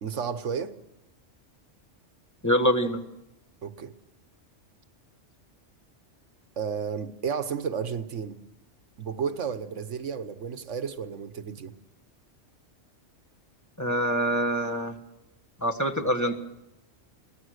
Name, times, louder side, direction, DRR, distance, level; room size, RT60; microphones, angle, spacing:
voice 1, 0.0-0.7 3.6-3.9 6.6-8.4 9.0-11.7, right 6 dB, 75° right, 10 dB, 1.3 m, -32 dB
voice 2, 2.4-3.0 13.8-14.9 15.6-16.3, equal, 15° left, 2 dB, 1.5 m, -25 dB
23.0 x 17.5 x 6.5 m, 0.92 s
omnidirectional pair, 1.3 m